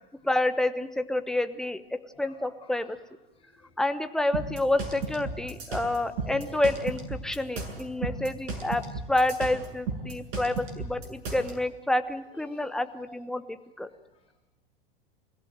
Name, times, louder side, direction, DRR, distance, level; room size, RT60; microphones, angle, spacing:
voice 1, 0.2-3.0 3.8-8.8 9.1-13.4 13.8-13.9, left 1 dB, ahead, 10 dB, 1.1 m, -28 dB
voice 2, 2.2-3.0 3.3-3.7 5.9-6.6 8.1-8.2 8.6-8.8 12.3-13.1 13.9-14.3, left 4 dB, 20° left, 2 dB, 4.9 m, -52 dB
sound 1, 4.3-11.5, right 4 dB, 45° right, 7.6 m, -34 dB
29.0 x 16.0 x 9.2 m, 1.1 s
figure-of-eight pair, 90°, 30 cm